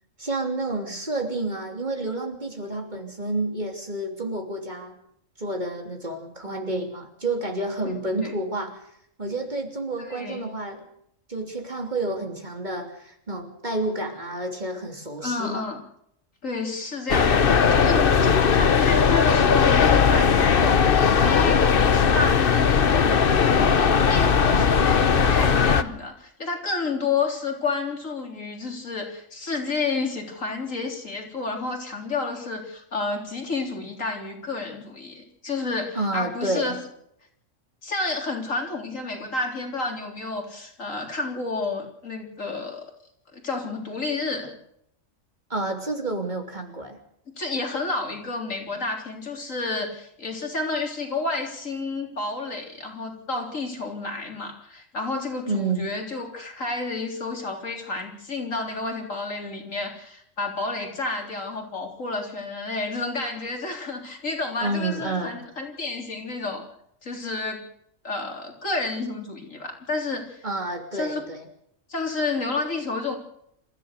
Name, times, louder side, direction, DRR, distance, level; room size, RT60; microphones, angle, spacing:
voice 1, 0.2-5.0 5.4-8.8 9.2-10.9 11.3-15.7 36.0-36.8 45.5-47.0 55.5-55.9 64.6-65.4 70.4-71.4, right 2 dB, 35° right, 4 dB, 3.3 m, -29 dB
voice 2, 10.0-10.5 15.2-15.8 16.4-23.1 23.4-36.8 37.8-42.9 43.3-44.5 47.3-66.7 67.0-67.6 68.0-70.4 70.9-71.3 71.9-73.2, left 3 dB, 80° left, 2 dB, 4.1 m, -30 dB
sound 1, 17.1-25.8, left 6 dB, 45° left, 1.1 m, -18 dB
27.5 x 14.5 x 6.7 m, 0.73 s
omnidirectional pair, 1.3 m